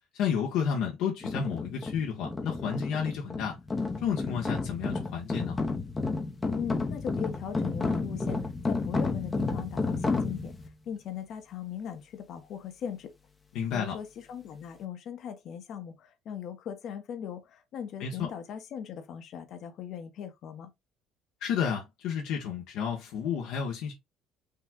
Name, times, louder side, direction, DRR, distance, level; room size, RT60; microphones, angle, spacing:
voice 1, 0.1-3.5 4.0-5.6 13.5-13.9 18.0-18.3 21.4-23.9, left 7 dB, 75° left, 1.4 m, -31 dB
sound 1, 1.2-10.7, left 3 dB, 20° left, 0.8 m, -31 dB
voice 2, 6.5-8.4 8.7-10.5 10.9-13.1 13.7-20.7, left 8 dB, 55° left, 1.1 m, -39 dB
5.7 x 2.4 x 3.7 m
cardioid pair, 140°, 0 cm